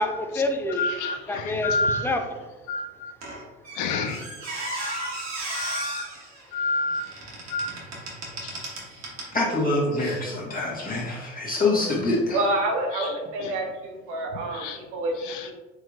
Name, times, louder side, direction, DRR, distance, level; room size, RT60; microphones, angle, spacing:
voice 1, 0.0-2.4, left 1 dB, 5° left, 4 dB, 0.4 m, -28 dB
voice 2, 0.8-1.2 1.6-2.0 2.7-3.1 3.8-4.2 4.8-5.1 5.5-6.0 6.5-7.0 7.5-7.7 14.6-14.8, left 3 dB, 55° left, 6 dB, 0.6 m, -27 dB
Squeak, 3.2-9.4 10.0-10.2, right 2 dB, 45° right, 1.4 m, -36 dB
voice 3, 9.3-12.4, left 2 dB, 25° left, -5 dB, 1.3 m, -25 dB
voice 4, 12.3-15.5, right 1 dB, 70° right, 2 dB, 0.8 m, -28 dB
4.6 x 2.8 x 2.4 m, 1.2 s
hypercardioid pair, 75°, 37 cm